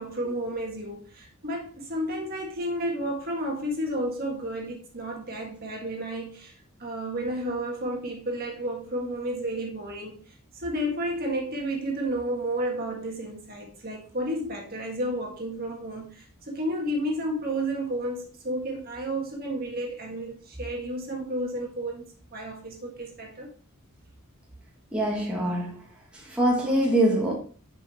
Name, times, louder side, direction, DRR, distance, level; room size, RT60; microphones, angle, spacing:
voice 1, 0.0-6.5 6.8-10.2 10.5-23.5, right 1 dB, 40° right, 1.6 m, -31 dB
voice 2, 24.9-25.8 26.1-27.3, right 1 dB, 5° right, 1.3 m, -24 dB
6.8 x 5.2 x 2.9 m
head